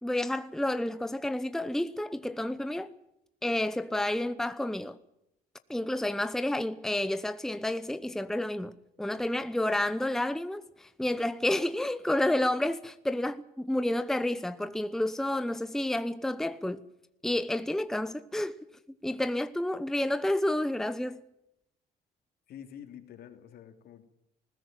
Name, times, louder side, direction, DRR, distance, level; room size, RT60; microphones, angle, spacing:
voice 1, 0.0-2.9 3.4-5.0 5.7-16.9 17.2-18.6 19.0-21.2, left 1 dB, 5° left, 0.8 m, -30 dB
voice 2, 22.5-24.0, left 9 dB, 65° left, 3.1 m, -47 dB
20.0 x 16.0 x 9.0 m
cardioid pair, 110°, 17 cm